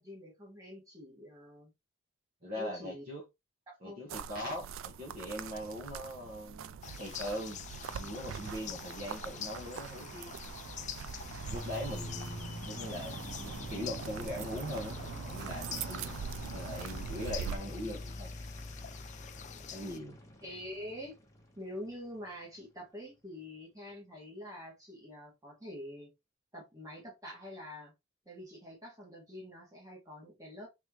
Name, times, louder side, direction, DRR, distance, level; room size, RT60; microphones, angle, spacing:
voice 1, 0.0-1.7 2.5-3.0 3.7-4.1 20.4-21.2 21.6-26.1 26.5-27.9 28.3-30.7, left 1 dB, 15° right, 1.7 m, -46 dB
voice 2, 2.4-3.2 3.8-7.6 7.9-10.3 11.5-13.1 13.7-16.2 16.5-18.3 19.7-20.2, left 1 dB, 45° right, 1.2 m, -41 dB
sound 1, 4.1-17.6, right 7 dB, 70° right, 0.3 m, -43 dB
sound 2, 6.8-20.0, left 9 dB, 35° left, 0.3 m, -47 dB
sound 3, 10.4-22.4, left 1 dB, 15° left, 0.9 m, -46 dB
3.6 x 3.4 x 3.0 m
head